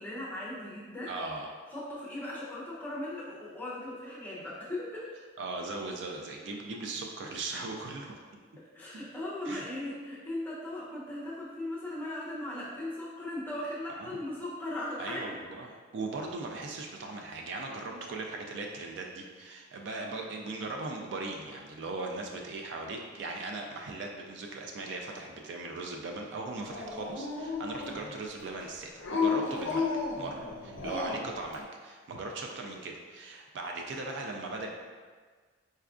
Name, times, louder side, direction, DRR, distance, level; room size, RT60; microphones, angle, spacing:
voice 1, 0.0-1.1 1.7-5.1 8.7-15.4 17.9-18.0 30.8-31.0, left 1 dB, 10° left, -8 dB, 0.7 m, -38 dB
voice 2, 1.1-1.5 5.4-8.2 8.9-9.0 9.5-9.7 13.9-14.1 15.0-34.7, right 3 dB, 60° right, 1 dB, 0.3 m, -39 dB
Dog, 26.7-28.2 29.0-31.4, left 4 dB, 65° left, 0.5 m, -33 dB
4.3 x 2.3 x 2.4 m, 1.5 s
head